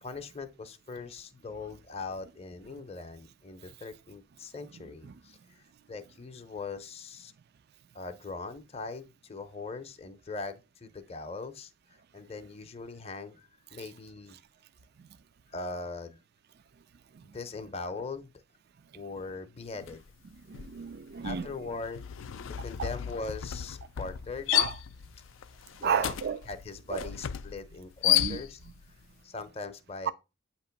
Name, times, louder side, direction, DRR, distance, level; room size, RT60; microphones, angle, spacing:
voice 1, 0.0-7.3 7.9-14.4 15.5-16.2 17.2-18.3 18.9-20.0 21.2-22.1 22.6-24.6 25.8-26.1 26.5-28.6 29.2-30.1, left 3 dB, 30° left, 0.6 m, -40 dB
sound 1, 19.8-20.1 20.4-28.8, left 12 dB, 70° left, 0.4 m, -32 dB
voice 2, 20.5-21.5 22.8-22.9 24.5-24.7 25.8-26.4 26.9-27.1 28.1-28.4 30.1-30.2, right 7 dB, 50° right, 0.4 m, -32 dB
8.5 x 3.0 x 5.8 m
head